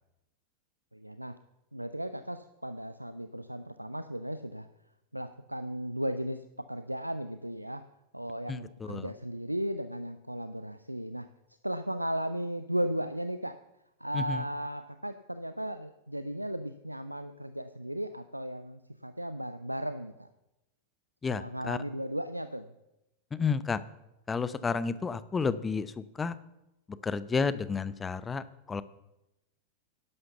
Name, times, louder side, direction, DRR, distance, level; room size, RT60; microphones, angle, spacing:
voice 1, 0.9-1.4 1.7-4.7 5.1-7.8 8.1-11.3 11.6-13.6 14.0-20.3 21.3-22.7, equal, 90° right, 11 dB, 0.5 m, -36 dB
voice 2, 8.5-9.1 14.1-14.4 21.2-21.8 23.3-23.8 24.3-26.4 27.0-28.8, left 5 dB, 15° left, 16 dB, 0.7 m, -31 dB
11.0 x 11.0 x 6.9 m, 0.93 s
figure-of-eight pair, 90°, 0 cm